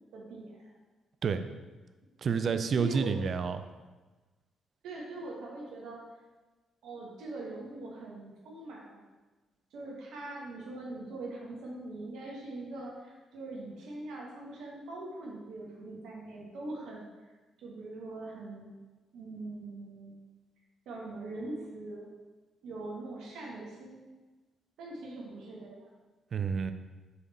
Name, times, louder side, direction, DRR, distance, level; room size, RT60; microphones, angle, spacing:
voice 1, 0.1-0.8 2.7-3.3 4.8-6.0 6.8-9.0 9.7-17.1 17.6-18.7 19.1-20.2 20.8-22.1 22.6-24.1 24.8-25.9, right 2 dB, 70° right, -2 dB, 1.2 m, -42 dB
voice 2, 2.2-3.6 26.3-26.7, right 5 dB, 55° right, 10 dB, 0.4 m, -29 dB
4.9 x 4.8 x 4.1 m, 1.2 s
hypercardioid pair, 45°, 0 cm